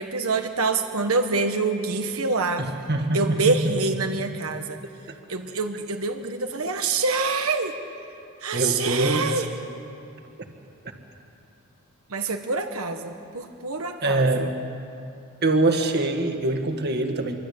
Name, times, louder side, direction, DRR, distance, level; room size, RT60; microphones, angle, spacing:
voice 1, 0.0-2.7 3.1-4.8 5.3-7.7 8.4-9.5 12.1-14.5, right 3 dB, 85° right, 5 dB, 1.5 m, -26 dB
voice 2, 2.6-3.6 8.5-9.4 14.0-14.6 15.4-17.4, right 2 dB, 50° right, 5 dB, 2.1 m, -24 dB
26.0 x 23.5 x 8.7 m, 2.7 s
head